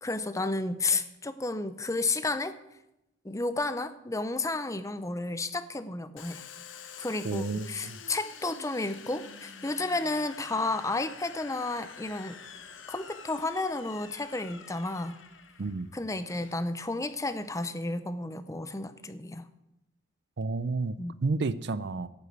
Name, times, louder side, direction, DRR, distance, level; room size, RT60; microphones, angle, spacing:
voice 1, 0.0-2.5 3.2-6.4 7.0-12.4 12.9-15.2 15.9-19.5 21.0-21.1, left 2 dB, 15° left, 12 dB, 0.6 m, -32 dB
Domestic sounds home sounds, 6.2-17.5, left 6 dB, 65° left, 1.1 m, -48 dB
voice 2, 7.2-8.0 15.6-15.9 20.4-22.1, right 3 dB, 55° right, 16 dB, 0.5 m, -31 dB
12.0 x 8.0 x 8.2 m, 0.88 s
head